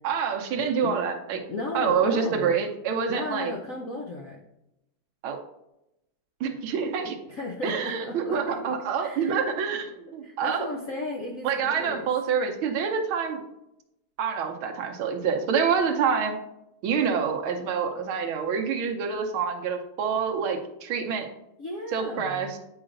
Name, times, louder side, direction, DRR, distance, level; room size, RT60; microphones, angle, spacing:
voice 1, 0.0-1.4 1.7-3.5 5.2-5.4 6.4-7.2 7.6-10.7 11.4-13.4 14.2-16.4 16.8-21.3 21.9-22.6, right 6 dB, 80° right, 3 dB, 1.6 m, -27 dB
voice 2, 0.6-0.9 1.5-2.6 3.1-4.4 7.3-8.7 9.0-9.4 10.2-12.1 21.6-22.5, left 2 dB, 70° left, 0 dB, 0.7 m, -35 dB
8.8 x 4.9 x 2.5 m, 0.87 s
omnidirectional pair, 2.3 m